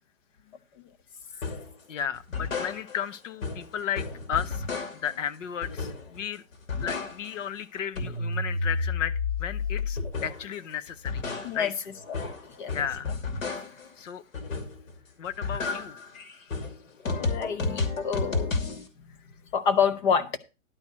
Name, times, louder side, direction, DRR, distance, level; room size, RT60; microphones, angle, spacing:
sound 1, 1.4-1.7 2.1-3.1 3.4-5.2 5.6-6.2 6.5-7.5 7.8-10.5 10.9-13.9 14.3-14.9 15.2-18.9, left 4 dB, 90° left, 2.7 m, -32 dB
voice 1, 1.9-4.6 5.0-6.4 6.8-11.2 11.5-11.7 12.7-13.1 14.0-14.2 15.2-16.0, left 8 dB, 70° left, 1.0 m, -34 dB
voice 2, 17.2-18.5 19.5-20.3, left 6 dB, 35° left, 1.0 m, -27 dB
11.5 x 4.5 x 7.3 m
hypercardioid pair, 170°, 39 cm